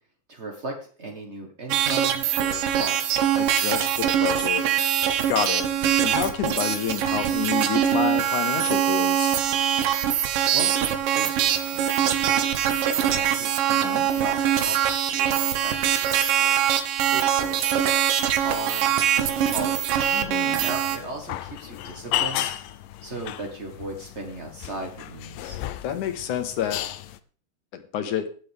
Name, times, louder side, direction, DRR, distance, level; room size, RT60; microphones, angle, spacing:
voice 1, 0.3-3.2 10.5-10.7 11.1-16.6 17.1-18.0 18.3-20.0 20.6-22.5 23.0-25.6, right 2 dB, 45° right, 1 dB, 0.8 m, -38 dB
sound 1, 1.7-21.0, right 10 dB, 90° right, 2.8 m, -23 dB
voice 2, 3.4-4.7 5.3-5.7 6.0-9.4 13.7-14.1 20.1-20.6 25.8-26.9 27.7-28.3, left 9 dB, 70° left, 8 dB, 2.8 m, -29 dB
sound 2, 20.6-27.2, left 13 dB, 85° left, 2.4 m, -33 dB
18.0 x 7.6 x 3.5 m, 0.42 s
omnidirectional pair, 3.8 m